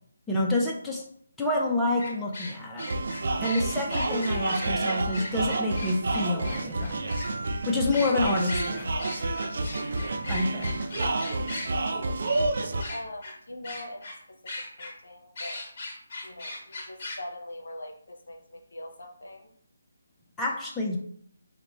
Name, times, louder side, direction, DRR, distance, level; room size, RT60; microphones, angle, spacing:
voice 1, 0.3-1.0 1.4-2.9 3.4-7.0 7.7-9.3 10.3-10.8 20.4-21.0, left 2 dB, 5° left, -3 dB, 0.4 m, -28 dB
sound 1, 2.0-7.3 7.9-11.7 12.2-12.4 12.8-13.3 13.6-14.2 14.5-14.9 15.4-17.2, left 2 dB, 35° left, 1.1 m, -38 dB
sound 2, 2.8-12.8, right 2 dB, 50° right, 0.4 m, -29 dB
voice 2, 12.2-15.6 16.2-19.5, left 1 dB, 65° left, 4 dB, 0.6 m, -43 dB
4.8 x 2.1 x 3.0 m, 0.64 s
figure-of-eight pair, 150°, 0 cm